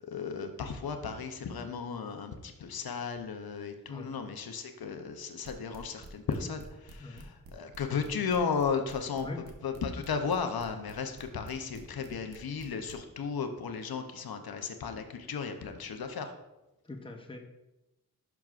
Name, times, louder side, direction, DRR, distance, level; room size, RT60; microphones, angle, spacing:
voice 1, 0.0-9.3 9.6-16.3, left 6 dB, 85° left, 6 dB, 0.7 m, -35 dB
sound 1, 5.4-12.9, right 3 dB, 85° right, 1.0 m, -50 dB
voice 2, 9.1-9.4 16.8-17.4, left 2 dB, 15° left, 3 dB, 0.8 m, -42 dB
10.5 x 6.0 x 2.5 m, 0.97 s
wide cardioid pair, 115°, 35 cm